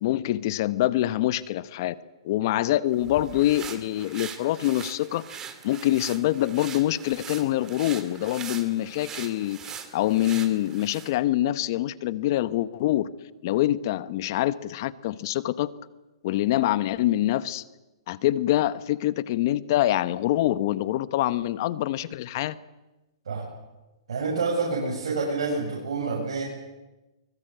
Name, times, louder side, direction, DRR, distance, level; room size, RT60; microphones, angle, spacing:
voice 1, 0.0-2.0 2.2-5.2 5.6-13.1 13.4-15.7 16.2-17.6 18.1-22.6, left 14 dB, 45° left, 16 dB, 0.9 m, -25 dB
sound 1, 2.9-11.2, right 8 dB, 20° right, 2.1 m, -41 dB
voice 2, 24.1-26.4, right 4 dB, 80° right, -3 dB, 7.7 m, -28 dB
24.0 x 21.5 x 7.9 m, 1.1 s
hypercardioid pair, 150°, 3 cm